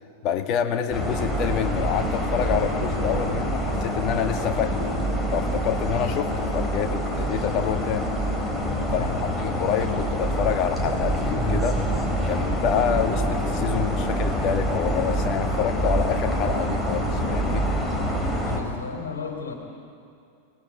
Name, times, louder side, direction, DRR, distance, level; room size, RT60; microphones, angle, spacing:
voice 1, 0.2-4.9 5.3-8.1 8.9-11.8 12.3-17.6, left 9 dB, 40° left, 6 dB, 1.9 m, -27 dB
sound 1, 0.9-18.6, equal, 5° left, 4.3 m, -26 dB
voice 2, 8.9-9.4 18.4-19.5, left 6 dB, 65° left, 1 dB, 3.3 m, -34 dB
24.5 x 20.0 x 8.7 m, 2.5 s
figure-of-eight pair, 90°, 0 cm